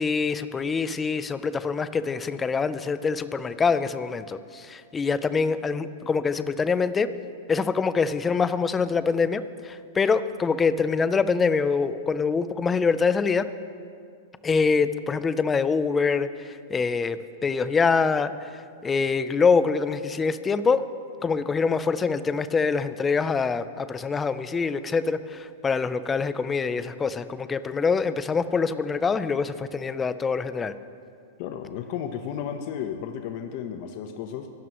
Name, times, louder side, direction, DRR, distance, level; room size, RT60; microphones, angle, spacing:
voice 1, 0.0-7.1 7.5-13.5 14.4-20.8 21.2-30.8, left 5 dB, 15° left, 13 dB, 0.6 m, -25 dB
voice 2, 31.4-34.5, left 8 dB, 50° left, 5 dB, 0.9 m, -33 dB
24.5 x 12.5 x 3.1 m, 2.3 s
hypercardioid pair, 135°, 0 cm